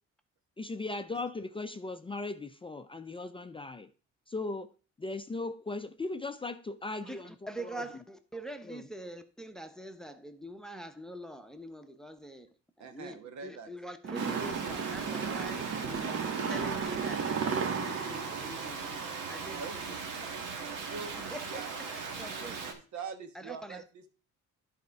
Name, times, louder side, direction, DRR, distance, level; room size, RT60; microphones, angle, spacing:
voice 1, 0.6-3.9 4.3-4.7 5.0-7.8 8.6-8.9, left 3 dB, 20° left, 0.5 m, -38 dB
voice 2, 7.0-19.9 21.3-21.7 22.2-22.6 23.3-23.8, right 1 dB, ahead, 0.8 m, -45 dB
voice 3, 12.8-13.7 14.8-15.4 19.4-20.0 20.9-21.1 21.5-21.7 22.3-22.4 22.7-24.1, right 5 dB, 70° right, 1.2 m, -44 dB
sound 1, 14.0-19.4, right 6 dB, 50° right, 1.0 m, -34 dB
sound 2, 14.1-22.7, right 5 dB, 90° right, 1.5 m, -39 dB
10.5 x 4.3 x 4.7 m
cardioid pair, 90°, 30 cm